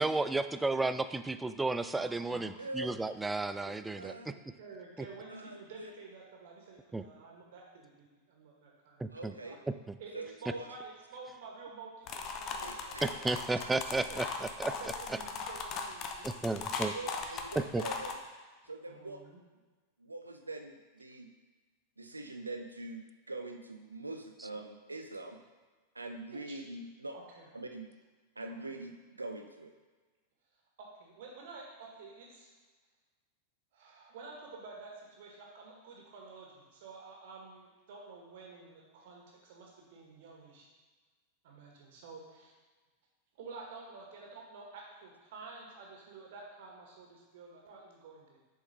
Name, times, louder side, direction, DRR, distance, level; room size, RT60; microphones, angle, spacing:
voice 1, 0.0-4.3 6.9-7.0 9.0-9.3 9.7-9.8 13.0-14.3 14.6-14.7 16.2-16.9 17.6-17.8, right 2 dB, 10° right, 11 dB, 0.3 m, -33 dB
voice 2, 1.9-2.5 2.9-3.0 3.6-9.6 10.0-13.5 14.1-14.2 14.7-16.5 16.9-17.1 18.9-19.4 26.3-26.5 27.1-27.5 28.7-28.8 30.8-32.5 33.7-40.7 41.4-42.5 43.4-48.4, right 4 dB, 55° right, -1 dB, 1.6 m, -50 dB
voice 3, 2.6-3.0 4.0-4.3 5.3-5.9 9.1-9.6 10.1-10.7 12.6-13.7 16.9-18.2 18.6-19.2 20.0-21.3 22.0-23.0 23.3-25.4 25.9-27.2 27.5-27.9 28.4-29.7, right 2 dB, 80° right, 5 dB, 0.6 m, -43 dB
sound 1, 12.1-18.2, left 5 dB, 35° left, 0.7 m, -39 dB
6.7 x 4.8 x 4.3 m, 1.3 s
figure-of-eight pair, 90°, 0 cm